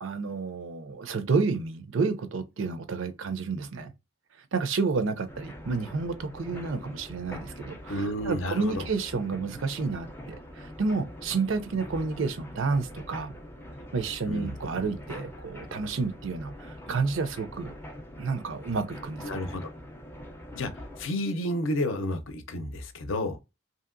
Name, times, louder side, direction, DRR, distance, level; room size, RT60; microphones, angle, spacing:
voice 1, 0.0-3.9 4.5-13.3 13.9-17.7 18.2-19.4, right 4 dB, 75° right, 0.5 m, -30 dB
sound 1, 5.3-21.1, equal, 10° left, 0.4 m, -44 dB
voice 2, 7.9-8.9 14.2-14.6 19.2-19.7 20.5-20.7 21.0-23.4, left 1 dB, 75° left, 0.6 m, -31 dB
2.7 x 2.7 x 2.5 m
head